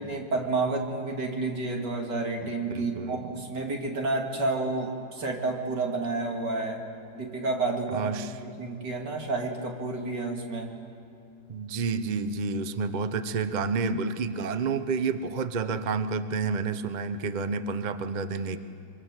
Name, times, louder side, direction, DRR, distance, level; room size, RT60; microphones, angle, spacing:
voice 1, 0.0-6.9 7.1-8.1 8.4-10.7, right 3 dB, 65° right, 1 dB, 3.0 m, -30 dB
voice 2, 2.4-3.4 7.9-8.3 11.5-18.6, right 4 dB, 50° right, 10 dB, 0.5 m, -30 dB
24.5 x 24.5 x 7.4 m, 2.5 s
omnidirectional pair, 2.0 m